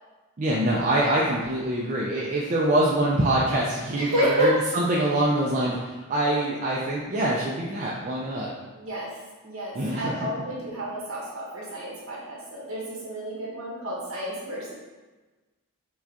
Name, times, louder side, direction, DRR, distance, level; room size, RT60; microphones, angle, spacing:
voice 1, 0.4-8.5 9.8-10.3, right 1 dB, 35° right, -5 dB, 0.3 m, -24 dB
voice 2, 3.9-4.5 8.7-9.1 9.4-14.7, right 1 dB, 60° right, -6 dB, 1.2 m, -30 dB
4.6 x 2.2 x 2.8 m, 1.2 s
head